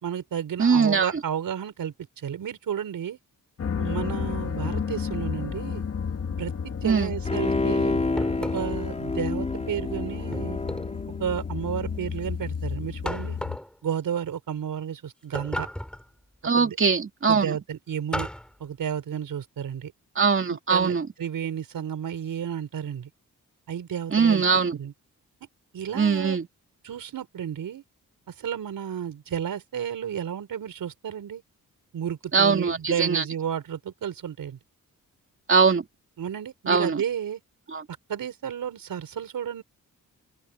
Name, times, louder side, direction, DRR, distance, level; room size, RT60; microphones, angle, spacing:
voice 1, 0.0-3.2 3.8-5.8 6.4-8.0 8.5-10.6 11.2-13.4 13.8-15.7 16.5-16.8 17.3-18.3 18.6-19.9 20.5-23.1 23.7-24.4 24.7-24.9 25.7-26.4 26.8-27.8 28.3-31.4 31.9-34.6 36.2-37.4 38.1-39.6, right 8 dB, 90° right, 4.5 m, -32 dB
voice 2, 0.6-1.1 6.8-7.1 16.4-17.5 20.2-21.1 24.1-24.7 25.9-26.5 32.3-33.2 35.5-35.8 36.7-37.0 37.7-37.8, right 5 dB, 40° right, 2.9 m, -21 dB
sound 1, 3.6-13.6, left 6 dB, 50° left, 1.8 m, -32 dB
Bowed string instrument, 7.2-11.9 12.3-12.4, left 2 dB, 20° left, 4.4 m, -29 dB
sound 2, 8.2-8.9 10.3-11.0 13.0-13.7 15.3-16.1 18.1-18.5, equal, 5° left, 5.9 m, -34 dB
open air
wide cardioid pair, 145°, 33 cm